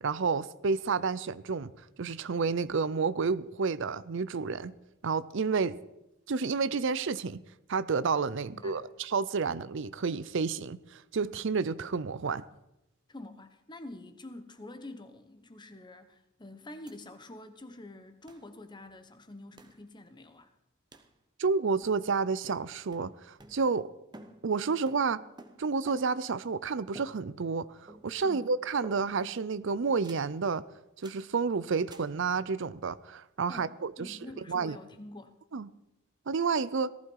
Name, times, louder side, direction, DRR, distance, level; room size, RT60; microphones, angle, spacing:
voice 1, 0.0-1.7 2.0-4.7 5.0-5.8 6.3-7.4 7.7-12.4 21.4-23.9 24.4-25.2 25.6-30.6 31.0-34.2 34.5-34.8 35.5-35.7 36.3-36.9, right 5 dB, 60° right, 0.5 m, -30 dB
voice 2, 8.4-8.9 13.1-20.5 28.2-28.5 33.5-35.3, left 1 dB, 20° left, 1.2 m, -47 dB
sound 1, 16.9-17.0 17.2-17.3 18.3-18.5 19.6-19.8 20.9-21.2 21.8-22.2 22.4-23.9 24.1-26.3 26.9-27.6 27.9-28.3 28.8-29.3 30.0-30.4 31.0-31.3 31.9-32.2, right 2 dB, 20° right, 1.1 m, -52 dB
18.5 x 14.5 x 4.7 m
head